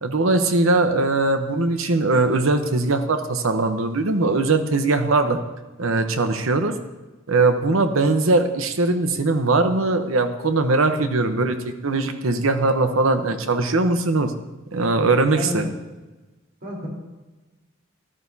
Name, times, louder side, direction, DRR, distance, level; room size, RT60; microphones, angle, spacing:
voice 1, 0.0-5.4 5.8-6.8 7.3-14.3 14.7-15.7, right 3 dB, 85° right, 7 dB, 0.9 m, -20 dB
voice 2, 15.3-15.7 16.6-16.9, left 1 dB, 50° right, -3 dB, 4.0 m, -30 dB
13.5 x 12.5 x 2.8 m, 1.2 s
head